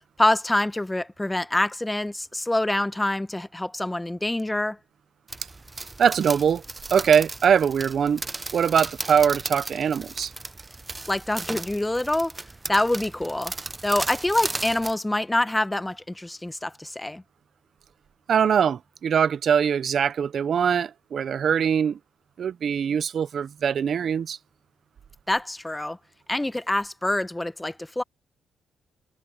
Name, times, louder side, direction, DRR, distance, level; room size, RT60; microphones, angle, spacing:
voice 1, 0.2-4.8 11.1-12.3 12.7-13.5 13.8-17.2 25.3-26.0 26.3-28.0, left 1 dB, 10° left, 0.9 m, -25 dB
sound 1, 5.3-14.9, right 3 dB, 20° right, 0.7 m, -36 dB
voice 2, 6.0-6.6 6.9-8.2 8.5-10.3 18.3-22.0 22.4-24.4, right 7 dB, 55° right, 0.7 m, -22 dB
cardioid pair, 90°, 0 cm